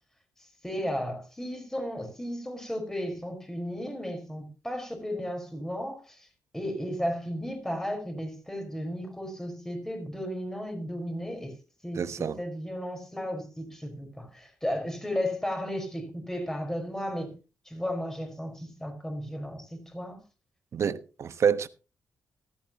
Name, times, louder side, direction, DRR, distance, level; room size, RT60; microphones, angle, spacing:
voice 1, 0.4-6.3 6.5-11.5 11.8-17.4 17.6-20.2, equal, 10° left, 4.9 m, -34 dB
voice 2, 11.9-12.4 20.7-21.7, right 7 dB, 55° right, 1.0 m, -27 dB
15.0 x 13.5 x 3.0 m
cardioid pair, 100°, 6 cm